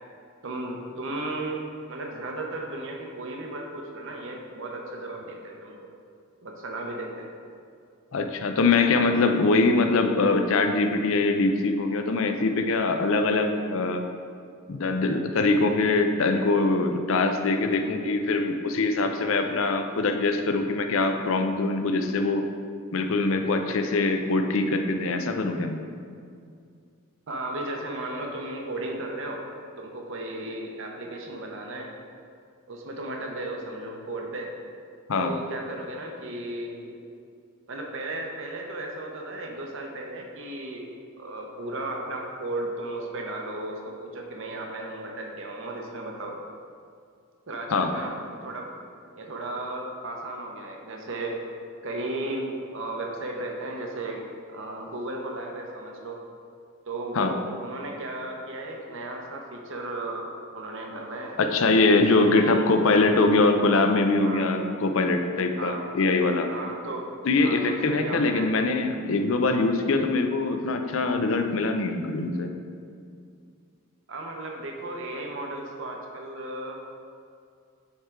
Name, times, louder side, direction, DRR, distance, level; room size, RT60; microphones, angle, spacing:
voice 1, 0.4-5.9 6.4-7.3 27.3-29.4 29.8-31.9 32.7-34.5 35.2-36.9 37.7-40.9 41.2-46.4 47.5-48.1 48.4-48.7 49.1-51.4 51.8-56.2 56.9-61.4 61.9-62.7 64.2-64.5 65.6-65.9 66.5-67.1 67.4-68.5 74.1-76.8, right 2 dB, 60° right, 1 dB, 0.8 m, -35 dB
voice 2, 8.1-14.0 14.7-22.4 22.9-25.8 35.1-35.3 47.7-47.9 57.1-57.3 61.4-66.5 67.2-72.5, left 3 dB, 65° left, 6 dB, 0.5 m, -23 dB
8.2 x 3.7 x 4.5 m, 2.3 s
head